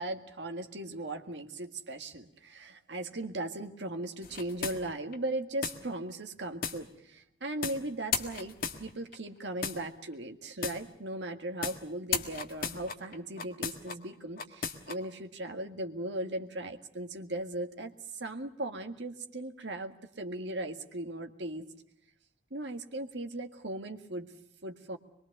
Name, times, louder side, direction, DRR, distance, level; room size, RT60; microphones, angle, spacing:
voice 1, 0.0-21.7 22.5-24.3 24.6-25.0, right 1 dB, 80° right, 5 dB, 1.8 m, -38 dB
sound 1, 4.2-5.2 5.6-5.8 6.6-6.8 7.6-7.8 8.1-9.2 9.6-9.8 10.6-10.8 11.6-11.8 12.1-13.9 14.4-14.9, left 6 dB, 50° left, 1.7 m, -34 dB
23.5 x 22.5 x 6.6 m, 0.77 s
head